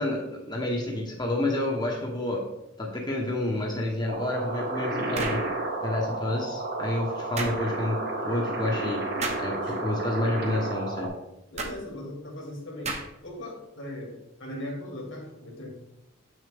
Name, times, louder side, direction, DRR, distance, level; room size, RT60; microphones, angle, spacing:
voice 1, 0.0-2.4 2.8-5.4 5.8-8.0 8.2-9.0 9.4-11.1, left 1 dB, 20° left, -1 dB, 1.0 m, -29 dB
sound 1, 4.1-11.1, right 2 dB, 50° right, 1.5 m, -32 dB
sound 2, 5.1-5.5 7.4-7.6 9.2-9.5 11.6-11.8 12.8-13.2, right 3 dB, 35° right, 1.0 m, -32 dB
voice 2, 9.5-9.9 11.5-15.7, left 1 dB, 70° left, 0 dB, 2.2 m, -39 dB
7.9 x 6.4 x 3.4 m, 0.90 s
head